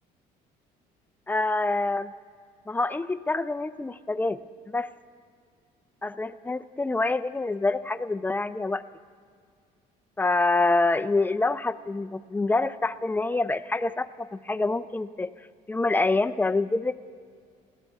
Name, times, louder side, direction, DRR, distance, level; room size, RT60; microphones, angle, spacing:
voice 1, 1.3-2.1 2.7-4.4 4.7-4.9 6.0-8.8 10.2-15.3 15.7-16.9, left 3 dB, 10° left, 12 dB, 0.4 m, -26 dB
21.0 x 16.0 x 3.6 m, 2.1 s
cardioid pair, 110°, 17 cm